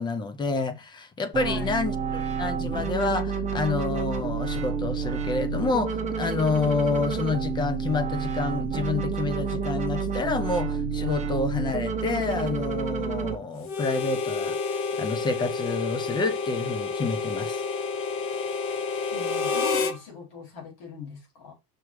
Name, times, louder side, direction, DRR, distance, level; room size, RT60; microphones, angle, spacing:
voice 1, 0.0-14.6 15.0-17.6, left 3 dB, 10° left, 0.3 m, -28 dB
sound 1, 1.3-13.3, right 6 dB, 15° right, 1.3 m, -29 dB
voice 2, 1.4-1.7 19.1-21.5, left 5 dB, 55° left, 4.6 m, -40 dB
Harmonica, 13.6-20.0, left 5 dB, 25° left, 0.8 m, -29 dB
6.1 x 4.7 x 4.7 m
cardioid pair, 160°, 49 cm